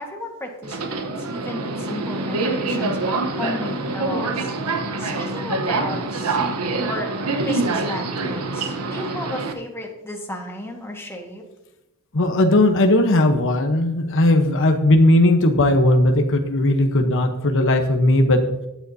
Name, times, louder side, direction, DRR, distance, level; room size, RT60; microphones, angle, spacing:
voice 1, 0.0-4.5 5.0-6.4 6.9-7.1 7.4-11.4, left 1 dB, 10° left, 1 dB, 1.6 m, -34 dB
Subway metro underground, 0.6-9.5, right 3 dB, 85° right, 1.1 m, -25 dB
voice 2, 12.1-18.4, left 1 dB, 60° left, 5 dB, 1.0 m, -17 dB
14.0 x 9.3 x 2.8 m, 0.93 s
head